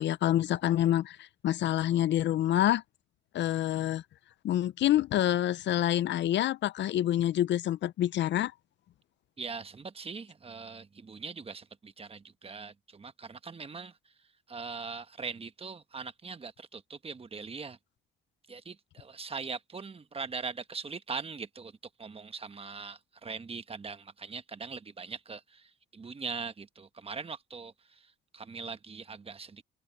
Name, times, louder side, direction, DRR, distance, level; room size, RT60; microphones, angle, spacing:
voice 1, 0.0-2.8 3.3-4.0 4.4-8.5, left 12 dB, 65° left, 0.5 m, -27 dB
voice 2, 9.4-14.0 14.5-17.8 18.5-29.6, right 4 dB, 30° right, 1.2 m, -41 dB
open air
cardioid pair, 90°, 20 cm